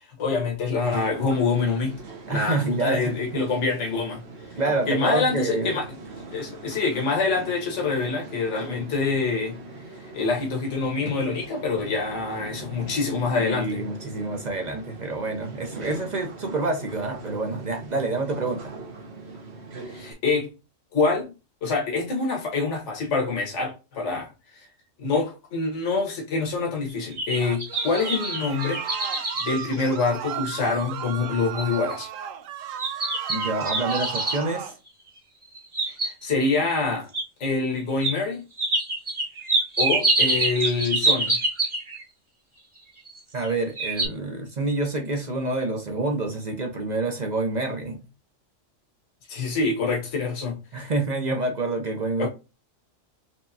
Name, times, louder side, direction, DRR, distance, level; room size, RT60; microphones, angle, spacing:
voice 1, 0.2-2.0 2.3-4.2 4.9-5.9 6.3-9.6 10.1-13.9 19.9-20.5 20.9-21.3 21.6-24.7 25.0-28.8 29.4-32.1 35.9-37.1 37.4-38.4 39.8-41.4 49.3-50.6 52.2-52.3, left 4 dB, 65° left, 1.5 m, -26 dB
sound 1, 0.8-20.1, right 2 dB, 55° right, 1.3 m, -41 dB
voice 2, 2.3-3.1 4.6-5.8 13.4-18.7 33.3-34.7 43.3-48.0 50.7-52.3, right 2 dB, 40° right, 0.7 m, -27 dB
sound 2, 26.9-30.5 31.0-31.1 31.6-31.9 32.8-34.4 35.4-36.4 37.1-37.2 38.0-38.2 38.6-42.0 43.1-43.5 43.8-44.1, right 2 dB, 25° right, 1.0 m, -26 dB
sound 3, 27.4-34.8, right 9 dB, 80° right, 0.9 m, -34 dB
4.5 x 3.2 x 2.7 m
omnidirectional pair, 1.3 m